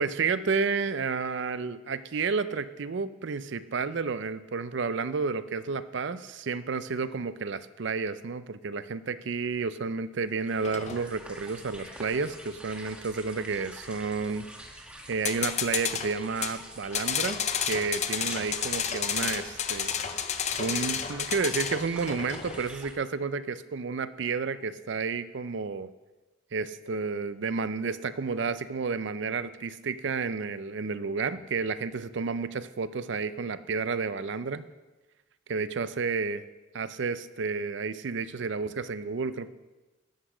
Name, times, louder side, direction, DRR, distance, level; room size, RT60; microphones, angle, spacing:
voice 1, 0.0-14.5 15.1-17.4 17.7-19.9 20.6-25.9 26.5-34.6 35.5-36.4 36.7-39.5, right 4 dB, 60° right, 14 dB, 0.5 m, -31 dB
sound 1, 10.3-22.9, right 1 dB, 5° right, 1.1 m, -46 dB
sound 2, 10.6-11.1 15.2-16.6 16.9-22.7, left 8 dB, 35° left, 0.5 m, -31 dB
12.0 x 8.0 x 5.0 m, 1.2 s
head